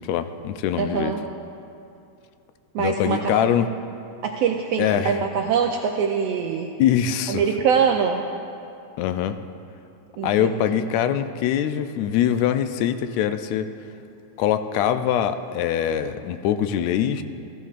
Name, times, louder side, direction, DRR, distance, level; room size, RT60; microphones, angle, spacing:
voice 1, 0.1-1.1 2.8-3.7 4.8-5.2 6.8-7.4 9.0-9.4 10.2-13.7 14.4-17.2, left 9 dB, 80° left, 9 dB, 1.6 m, -23 dB
voice 2, 0.8-1.2 2.7-3.4 4.2-6.7 7.3-8.3 10.2-10.3 10.8-10.9, right 6 dB, 80° right, 2 dB, 1.4 m, -23 dB
16.5 x 15.5 x 2.5 m, 2.6 s
omnidirectional pair, 3.5 m